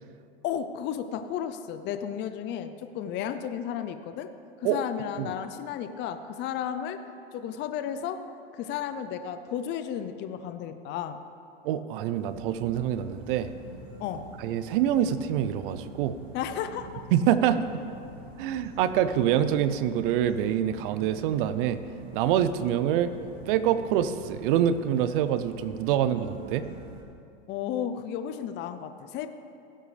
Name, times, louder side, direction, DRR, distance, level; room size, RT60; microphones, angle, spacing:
voice 1, 0.4-4.3 4.6-7.0 7.3-8.2 8.5-11.2 14.0-14.2 16.3-17.0 27.5-29.3, left 9 dB, 35° left, 9 dB, 0.6 m, -33 dB
voice 2, 11.6-13.5 14.4-16.2 17.1-17.6 18.4-21.8 22.1-23.1 23.5-26.7, right 10 dB, 60° right, 13 dB, 0.6 m, -25 dB
sound 1, 12.2-27.0, right 2 dB, 90° right, 1.7 m, -45 dB
16.5 x 7.7 x 3.3 m, 2.5 s
hypercardioid pair, 105°, 31 cm